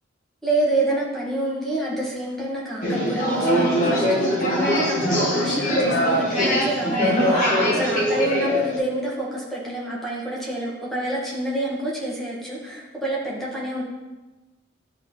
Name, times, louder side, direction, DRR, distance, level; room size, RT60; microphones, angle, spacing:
voice 1, 0.4-13.8, right 2 dB, ahead, -5 dB, 1.5 m, -28 dB
sound 1, 2.8-8.8, equal, 40° left, 1.7 m, -21 dB
10.5 x 4.1 x 3.8 m, 1.1 s
head